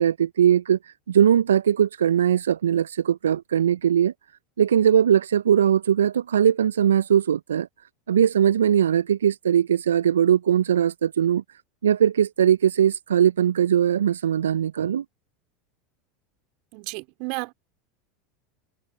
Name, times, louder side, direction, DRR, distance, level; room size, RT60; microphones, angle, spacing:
voice 1, 0.0-4.1 4.6-7.7 8.1-11.4 11.8-15.0, right 9 dB, 75° right, 0.6 m, -20 dB
voice 2, 16.7-17.5, right 32 dB, 55° right, 3.7 m, -32 dB
figure-of-eight pair, 80°, 0 cm